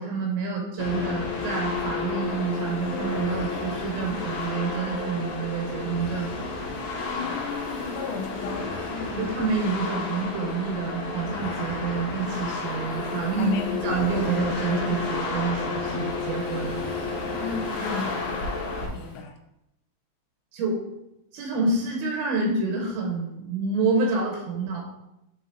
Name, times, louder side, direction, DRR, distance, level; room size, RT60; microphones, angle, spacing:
voice 1, 0.0-6.4 9.2-13.6 13.8-16.8 20.5-20.8 21.3-24.8, right 4 dB, 80° right, 0 dB, 3.4 m, -28 dB
sound 1, 0.8-18.9, left 3 dB, 70° left, 3.0 m, -31 dB
Waves surf, 0.9-19.2, left 2 dB, 30° left, 2.0 m, -49 dB
voice 2, 7.1-9.3 13.4-14.3 17.4-18.2 18.9-19.4, left 6 dB, 85° left, 1 dB, 3.4 m, -33 dB
11.0 x 3.8 x 2.8 m, 0.87 s
omnidirectional pair, 5.9 m